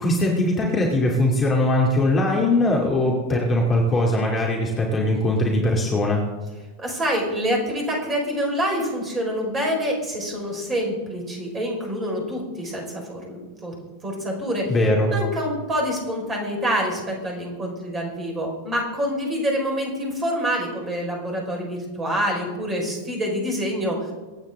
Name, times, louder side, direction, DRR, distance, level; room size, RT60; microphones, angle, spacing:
voice 1, 0.0-6.2 14.7-15.1, left 1 dB, 20° left, -1 dB, 2.3 m, -21 dB
voice 2, 6.8-13.7 14.0-14.7 15.0-24.1, equal, 20° right, 0 dB, 4.7 m, -26 dB
24.5 x 8.9 x 3.7 m, 1.2 s
figure-of-eight pair, 90°, 0 cm